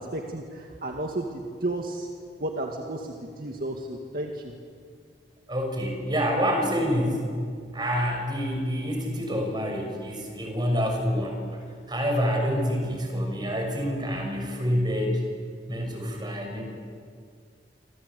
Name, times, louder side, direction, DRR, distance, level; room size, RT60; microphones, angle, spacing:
voice 1, 0.0-2.1 2.4-4.5, right 1 dB, 55° right, 2 dB, 2.1 m, -33 dB
voice 2, 5.5-7.3 7.7-15.2 15.7-16.6, equal, 25° right, 3 dB, 6.2 m, -27 dB
27.0 x 26.5 x 8.3 m, 2.2 s
head